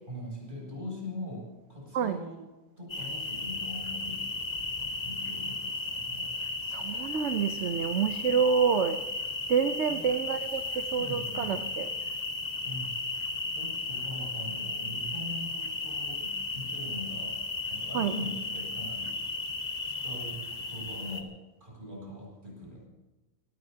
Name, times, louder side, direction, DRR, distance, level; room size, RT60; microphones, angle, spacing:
voice 1, 0.1-2.4 2.8-4.4 5.0-6.3 9.9-10.1 10.5-11.5 12.6-12.9 13.5-17.4 17.7-19.2 19.9-21.3 21.6-22.9, left 1 dB, 35° right, -3 dB, 8.2 m, -42 dB
sound 1, 2.9-21.2, left 3 dB, 30° left, 1.5 m, -35 dB
voice 2, 6.7-9.0 9.5-11.9 17.9-18.1, right 6 dB, 60° right, 9 dB, 1.0 m, -28 dB
24.0 x 19.0 x 2.8 m, 1.1 s
omnidirectional pair, 1.4 m